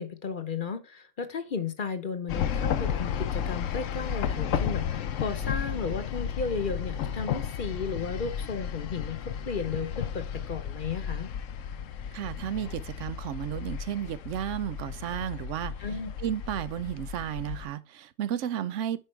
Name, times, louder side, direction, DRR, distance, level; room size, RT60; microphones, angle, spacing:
voice 1, 0.0-11.3 15.8-16.1, left 5 dB, 45° left, 0.9 m, -34 dB
sound 1, 2.3-17.6, left 8 dB, 85° left, 1.1 m, -33 dB
voice 2, 12.1-15.7 16.2-19.0, right 10 dB, 75° right, 1.0 m, -33 dB
9.9 x 4.7 x 3.2 m
omnidirectional pair, 1.3 m